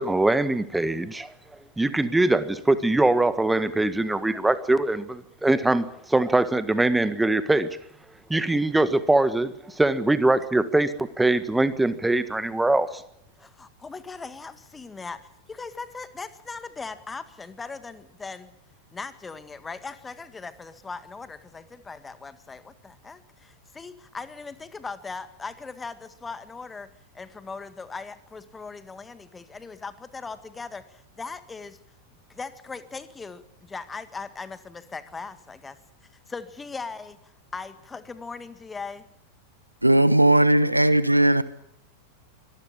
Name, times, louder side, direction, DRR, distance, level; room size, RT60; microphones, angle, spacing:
voice 1, 0.0-1.3 1.8-7.7 8.3-13.0, right 2 dB, 5° right, 1.6 m, -22 dB
voice 2, 13.4-18.5 18.9-26.9 27.1-31.8 32.3-35.8 36.3-39.1, left 4 dB, 15° left, 1.8 m, -39 dB
voice 3, 39.8-41.4, right 1 dB, 85° right, 1.2 m, -18 dB
24.5 x 18.5 x 8.6 m
figure-of-eight pair, 90°, 0 cm